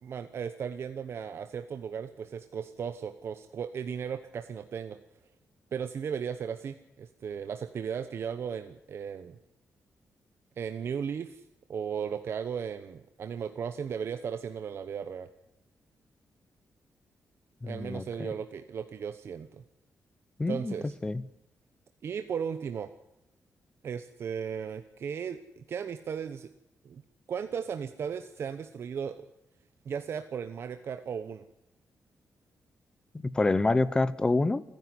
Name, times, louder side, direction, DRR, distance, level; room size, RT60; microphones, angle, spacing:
voice 1, 0.0-5.0 5.7-9.4 10.6-11.4 11.7-15.3 17.6-19.6 20.5-20.9 22.0-22.9 23.8-26.5 26.8-27.0 27.3-29.2 29.8-31.4, right 7 dB, 55° right, 9 dB, 1.0 m, -36 dB
voice 2, 17.6-18.3 20.4-20.7 21.0-21.2 33.3-34.6, left 2 dB, 15° left, 15 dB, 0.8 m, -27 dB
29.0 x 11.0 x 9.7 m, 0.91 s
wide cardioid pair, 165°, 5 cm